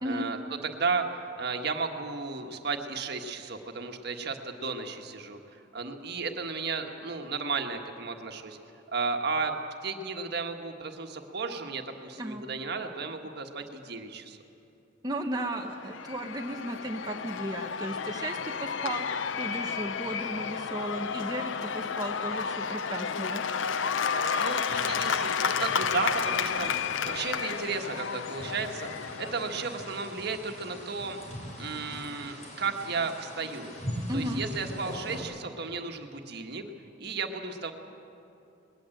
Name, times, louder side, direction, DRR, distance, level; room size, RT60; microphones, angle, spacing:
voice 1, 0.0-0.4 0.6-8.6 8.9-9.5 9.8-14.4 24.4-31.2 31.6-33.7 34.1-36.6 37.0-37.7, right 4 dB, 60° right, 5 dB, 1.5 m, -34 dB
voice 2, 15.0-23.4 34.1-34.4, right 1 dB, 20° right, 2 dB, 0.9 m, -35 dB
Cheering / Applause / Crowd, 15.5-30.2, left 6 dB, 80° left, 0.6 m, -32 dB
sound 1, 24.7-35.2, equal, 40° left, 3.6 m, -41 dB
20.5 x 18.0 x 7.8 m, 2.8 s
head